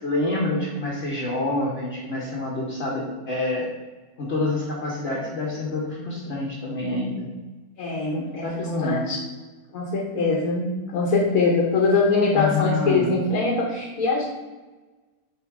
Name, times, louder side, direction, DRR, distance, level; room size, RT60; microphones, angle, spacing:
voice 1, 0.0-3.7 4.2-7.3 8.4-9.1 12.3-13.1, left 2 dB, 45° left, -4 dB, 1.3 m, -27 dB
voice 2, 7.8-9.2 9.7-14.3, left 3 dB, 75° left, -1 dB, 1.5 m, -23 dB
7.5 x 3.2 x 4.7 m, 1.2 s
omnidirectional pair, 1.6 m